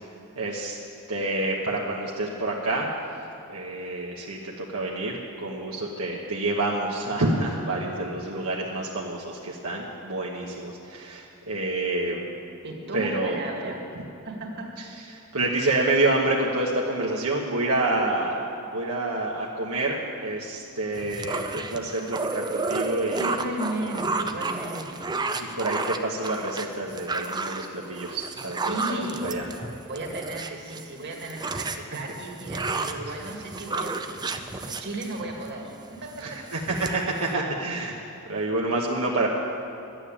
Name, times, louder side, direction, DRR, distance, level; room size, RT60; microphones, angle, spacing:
voice 1, 0.3-0.8 1.1-2.9 3.5-12.3 12.9-13.4 14.8-14.9 15.1-23.4 25.4-29.4 33.1-33.2 36.2-38.0 38.3-39.3, right 2 dB, 75° right, -3 dB, 1.2 m, -28 dB
voice 2, 12.6-13.8 14.2-14.7 22.0-22.1 23.2-25.3 28.6-29.3 29.9-36.4, right 1 dB, 50° right, 0 dB, 2.0 m, -35 dB
sound 1, 20.9-30.8 31.1-35.5 35.9-36.2 36.5-37.3, right 3 dB, 20° right, 0.6 m, -32 dB
12.0 x 9.1 x 8.6 m, 2.8 s
head